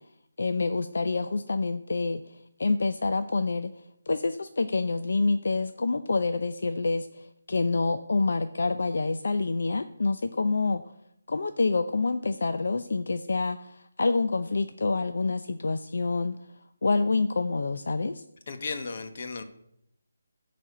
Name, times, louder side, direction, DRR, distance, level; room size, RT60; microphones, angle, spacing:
voice 1, 0.4-3.7 4.1-10.8 11.3-16.3 16.8-18.2, left 3 dB, 65° left, 9 dB, 0.5 m, -27 dB
voice 2, 18.5-19.4, left 4 dB, 40° left, 7 dB, 1.0 m, -35 dB
12.0 x 4.3 x 7.9 m, 0.77 s
hypercardioid pair, 170°, 0 cm